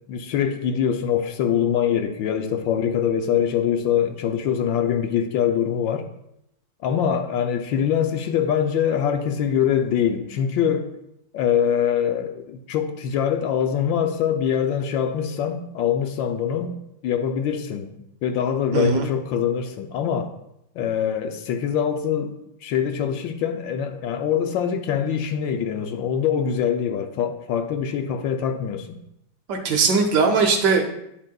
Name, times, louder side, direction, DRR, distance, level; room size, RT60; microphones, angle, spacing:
voice 1, 0.1-6.0 6.8-10.9 11.3-16.8 17.0-17.9 18.2-20.3 20.8-22.4 22.6-29.0, left 8 dB, 75° left, 6 dB, 1.3 m, -23 dB
voice 2, 18.7-19.1 29.5-30.9, right 4 dB, 65° right, 4 dB, 1.2 m, -20 dB
9.9 x 7.2 x 2.3 m, 0.80 s
omnidirectional pair, 2.2 m